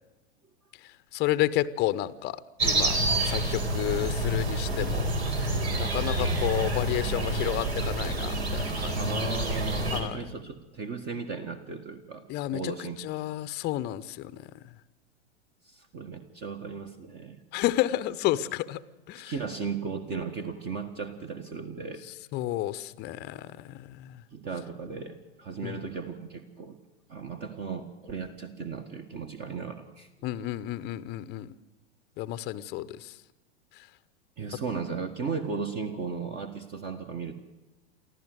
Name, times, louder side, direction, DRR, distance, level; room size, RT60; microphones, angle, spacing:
voice 1, 1.1-3.0 3.3-5.1 5.8-9.0 9.9-10.2 12.3-12.7 13.0-14.4 17.5-18.8 19.1-19.3 22.3-24.1 25.6-25.8 30.2-31.5 32.2-33.1, left 14 dB, 30° left, 15 dB, 0.8 m, -31 dB
sound 1, 2.6-10.0, right 1 dB, 65° right, 4.4 m, -28 dB
voice 2, 8.9-12.2 12.5-13.0 15.6-17.4 19.3-22.0 24.3-26.7 27.1-30.1 34.4-37.4, right 5 dB, 30° right, 5 dB, 1.6 m, -36 dB
24.0 x 15.0 x 7.9 m, 1.1 s
figure-of-eight pair, 95°, 34 cm